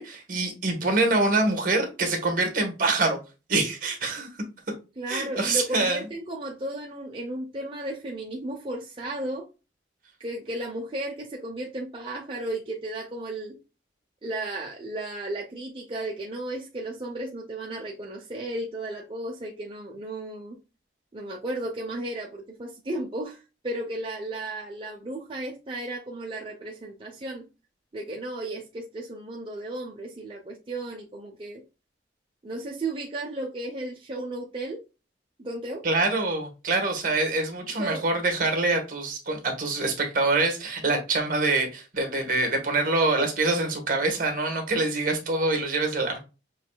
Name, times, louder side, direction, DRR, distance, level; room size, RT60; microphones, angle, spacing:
voice 1, 0.0-3.2 3.5-4.3 5.1-6.0 35.8-46.2, right 2 dB, 50° right, 1.4 m, -25 dB
voice 2, 5.0-9.4 10.2-13.5 14.2-20.6 21.1-27.4 27.9-31.6 32.4-34.8 35.4-35.8 37.8-38.0, right 1 dB, 30° right, 0.7 m, -34 dB
6.4 x 3.2 x 2.3 m
head